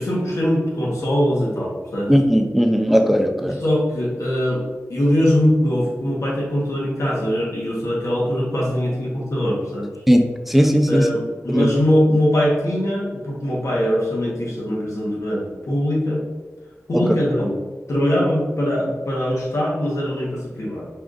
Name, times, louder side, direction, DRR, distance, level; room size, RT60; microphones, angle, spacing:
voice 1, 0.0-2.1 3.5-4.6 4.9-9.9 10.9-16.2 16.9-17.5 17.9-20.9, equal, 85° left, -4 dB, 1.2 m, -21 dB
voice 2, 2.1-3.6 10.1-11.1 11.5-11.7 16.9-17.0, equal, 5° right, 4 dB, 0.4 m, -17 dB
4.9 x 2.5 x 3.6 m, 1.3 s
wide cardioid pair, 85°, 5 cm